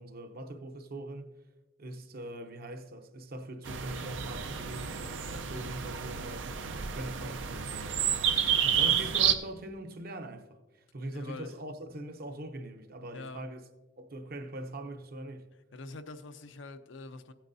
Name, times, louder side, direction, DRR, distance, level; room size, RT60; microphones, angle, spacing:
voice 1, 0.0-1.3 1.8-6.5 6.9-8.0 8.7-10.6 10.9-13.6 14.0-15.5, right 1 dB, 55° right, 0.8 m, -42 dB
sound 1, 3.6-9.3, right 8 dB, 80° right, 0.6 m, -30 dB
voice 2, 8.6-9.1 11.1-11.5 13.1-13.5 15.7-17.3, left 3 dB, 90° left, 0.7 m, -45 dB
15.5 x 8.9 x 2.7 m
head